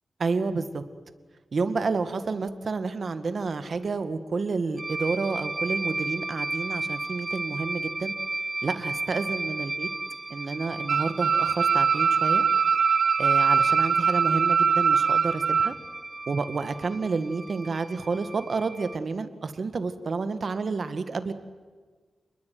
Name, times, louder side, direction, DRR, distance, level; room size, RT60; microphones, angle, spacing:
voice 1, 0.2-0.8 1.5-8.1 8.6-9.9 10.3-12.5 13.2-15.7 16.3-21.3, right 4 dB, 55° right, 10 dB, 1.8 m, -30 dB
sound 1, 4.8-19.0, right 2 dB, 25° right, 1.0 m, -34 dB
sound 2, 10.9-15.7, right 6 dB, 85° right, 1.0 m, -22 dB
28.5 x 21.0 x 9.4 m, 1.5 s
wide cardioid pair, 120°, 0 cm